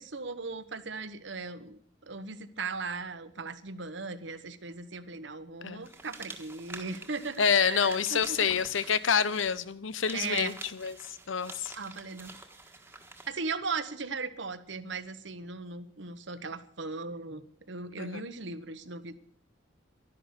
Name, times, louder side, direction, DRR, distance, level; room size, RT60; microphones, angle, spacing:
voice 1, 0.0-8.9 10.1-10.5 11.8-12.4 13.3-17.4 17.7-19.2, right 4 dB, 70° right, 1.1 m, -38 dB
sound 1, 5.8-13.4, right 3 dB, 10° right, 1.4 m, -48 dB
voice 2, 7.4-11.7 18.0-18.2, left 6 dB, 85° left, 0.8 m, -28 dB
12.0 x 11.0 x 8.0 m
head